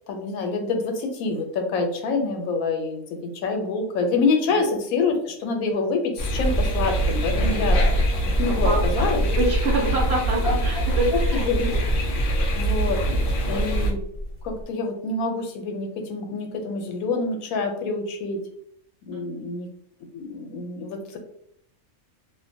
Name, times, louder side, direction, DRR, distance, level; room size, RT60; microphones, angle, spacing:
voice 1, 0.1-8.1 8.4-9.2 10.4-10.8 11.3-12.0 12.5-13.0 13.5-14.0 14.4-18.4 19.1-19.7 20.1-21.2, left 3 dB, 90° left, 4 dB, 1.0 m, -26 dB
sound 1, 6.2-13.9, right 1 dB, 65° left, 0.5 m, -24 dB
sound 2, 7.6-14.6, left 1 dB, 75° right, 1.1 m, -28 dB
voice 2, 8.6-11.5 19.1-19.6, right 2 dB, 60° right, -2 dB, 0.8 m, -26 dB
2.5 x 2.2 x 2.6 m, 0.70 s
omnidirectional pair, 1.4 m